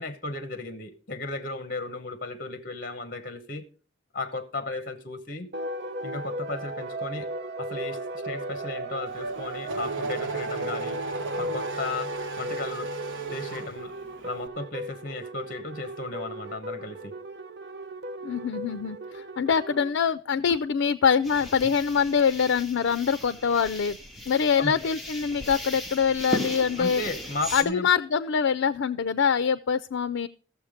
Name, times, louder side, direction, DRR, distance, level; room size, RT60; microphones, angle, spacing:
voice 1, 0.0-3.6 4.1-5.5 6.0-7.3 7.6-11.0 11.4-12.9 13.3-13.9 14.2-17.1 24.6-24.8 26.8-27.9, left 2 dB, 45° left, 1.0 m, -35 dB
sound 1, 5.5-19.9, right 1 dB, 55° right, 0.7 m, -36 dB
Race car auto racing / Accelerating revving vroom, 9.1-14.4, right 4 dB, 80° right, 1.2 m, -36 dB
voice 2, 18.2-24.0 24.3-27.0 27.5-30.3, left 6 dB, 85° left, 0.4 m, -24 dB
sound 2, 21.2-27.6, equal, ahead, 1.6 m, -37 dB
14.5 x 7.1 x 5.0 m
head